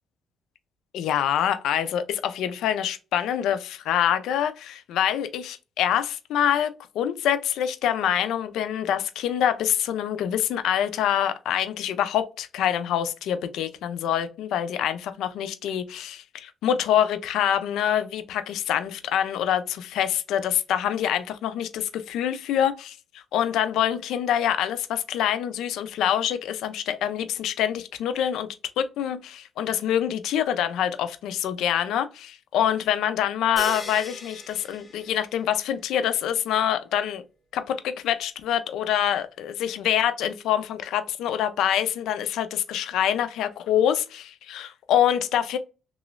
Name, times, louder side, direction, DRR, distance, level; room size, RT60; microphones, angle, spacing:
voice 1, 0.9-28.5 28.8-37.2 37.5-45.6, left 10 dB, 85° left, 0.4 m, -25 dB
sound 1, 33.6-35.7, left 2 dB, 20° left, 1.2 m, -39 dB
3.0 x 3.0 x 2.4 m
cardioid pair, 90°, 0 cm